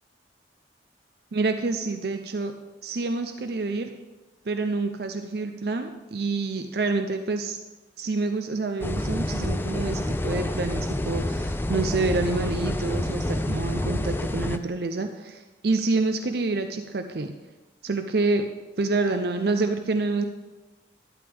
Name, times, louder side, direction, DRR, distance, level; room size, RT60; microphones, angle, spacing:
voice 1, 1.3-2.5 2.8-3.9 4.5-7.6 8.0-17.3 17.8-18.4 18.8-20.3, right 3 dB, 55° right, 6 dB, 0.5 m, -27 dB
sound 1, 8.8-14.6, left 1 dB, 10° left, 0.4 m, -28 dB
12.0 x 10.5 x 3.5 m, 1.1 s
head